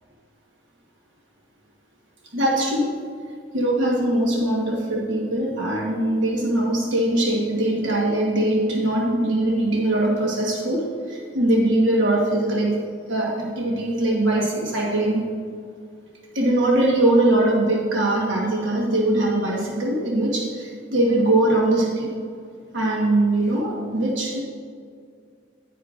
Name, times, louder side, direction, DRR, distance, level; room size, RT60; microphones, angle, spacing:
voice 1, 2.3-3.0 3.5-12.8 13.1-15.2 16.3-22.1 22.7-24.4, right 1 dB, 90° right, -2 dB, 1.2 m, -21 dB
10.0 x 9.8 x 2.4 m, 2.1 s
head